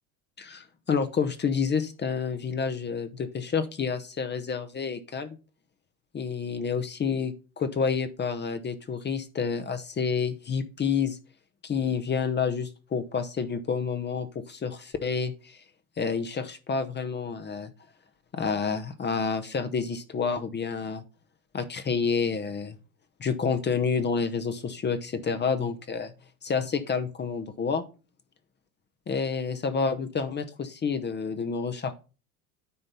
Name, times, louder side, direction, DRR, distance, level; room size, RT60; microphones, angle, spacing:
voice 1, 0.4-5.4 6.1-11.2 11.6-15.6 16.0-17.7 18.3-21.0 21.5-22.8 23.2-26.1 26.4-27.8 29.1-31.9, left 5 dB, 25° left, 9 dB, 0.9 m, -29 dB
9.5 x 4.0 x 5.4 m, 0.33 s
hypercardioid pair, 75°, 42 cm